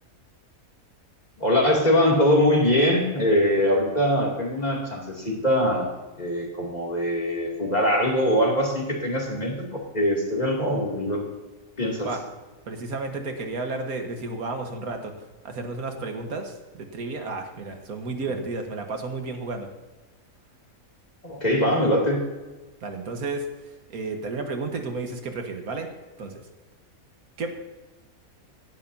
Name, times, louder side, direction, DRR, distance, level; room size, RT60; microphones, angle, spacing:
voice 1, 1.4-5.9 6.2-11.2 11.8-12.1 21.2-22.2, equal, 30° left, -2 dB, 2.8 m, -22 dB
voice 2, 12.7-15.1 15.4-19.7 22.8-23.5 23.9-25.9 26.2-26.4 27.4-27.5, right 3 dB, 80° right, 4 dB, 1.9 m, -32 dB
16.5 x 11.5 x 2.8 m, 1.2 s
omnidirectional pair, 1.5 m